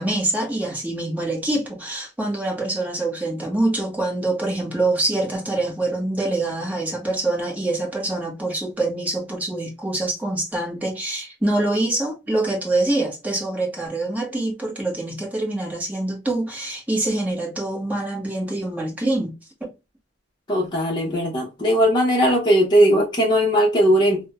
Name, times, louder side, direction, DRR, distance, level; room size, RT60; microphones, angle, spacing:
voice 1, 0.0-19.3, right 2 dB, 10° right, 0.9 m, -25 dB
voice 2, 20.5-24.2, equal, 25° left, 0.7 m, -18 dB
3.3 x 2.1 x 2.2 m
head